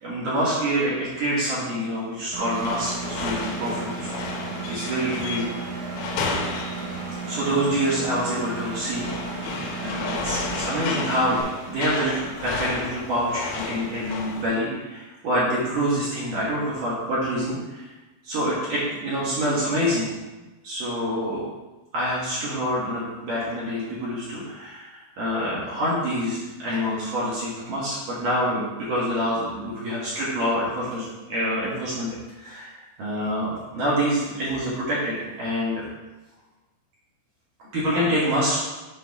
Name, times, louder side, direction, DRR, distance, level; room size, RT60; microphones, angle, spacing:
voice 1, 0.0-4.1 4.7-5.6 7.2-9.1 9.8-17.9 18.2-20.1 20.6-21.4 21.9-32.7 33.0-35.8 37.7-38.6, equal, 60° right, -8 dB, 2.5 m, -26 dB
Engine, 2.3-11.4, right 5 dB, 80° right, 1.9 m, -34 dB
sound 1, 2.5-14.5, left 4 dB, 85° left, 3.3 m, -33 dB
7.9 x 5.9 x 3.6 m, 1.1 s
omnidirectional pair, 5.4 m